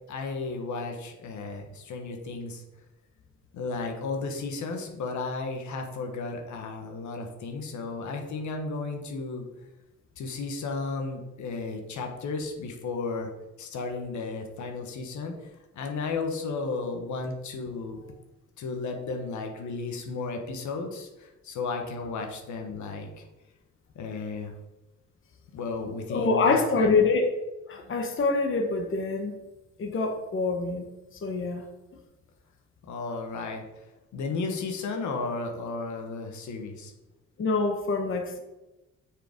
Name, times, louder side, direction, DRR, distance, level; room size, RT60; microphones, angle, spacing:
voice 1, 0.1-2.6 3.5-9.4 10.2-13.3 13.6-15.3 15.7-18.0 18.6-23.2 23.9-24.5 25.5-26.9 32.9-33.6 34.1-36.9, left 3 dB, 75° left, 3 dB, 1.3 m, -34 dB
voice 2, 26.1-27.4 27.7-29.3 29.8-30.9 31.2-31.6 37.4-38.4, left 3 dB, 40° left, 4 dB, 1.1 m, -25 dB
6.5 x 5.0 x 5.0 m, 1.0 s
cardioid pair, 90°, 30 cm